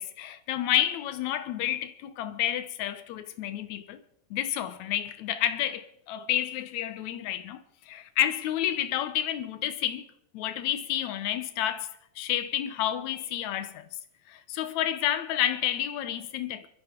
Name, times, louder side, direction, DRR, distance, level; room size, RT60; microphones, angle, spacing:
voice 1, 0.0-4.0 4.3-10.1 10.3-13.9 14.3-16.7, left 11 dB, 70° left, 2.0 m, -30 dB
23.5 x 12.5 x 4.5 m
omnidirectional pair, 4.0 m